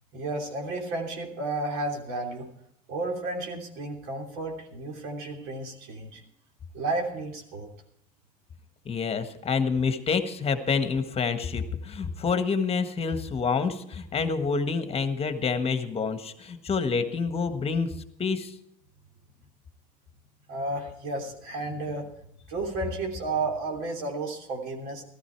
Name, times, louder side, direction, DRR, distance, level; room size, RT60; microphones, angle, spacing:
voice 1, 0.1-2.5 2.9-6.2 6.7-7.7 20.5-22.0 22.5-25.0, right 2 dB, 65° right, 1 dB, 3.2 m, -32 dB
voice 2, 8.8-17.9 18.2-18.5, left 5 dB, 30° left, 9 dB, 1.5 m, -27 dB
14.5 x 13.5 x 4.6 m, 0.74 s
hypercardioid pair, 80°, 21 cm